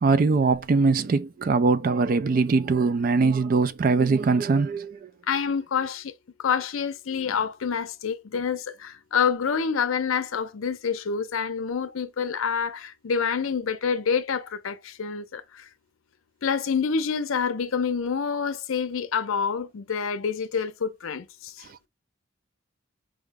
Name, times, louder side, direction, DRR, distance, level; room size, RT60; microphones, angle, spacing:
voice 1, 0.0-5.1, right 4 dB, 40° right, 0.3 m, -22 dB
voice 2, 5.3-6.1 6.4-15.7 16.4-21.7, left 6 dB, 80° left, 0.5 m, -27 dB
4.8 x 2.0 x 3.4 m
head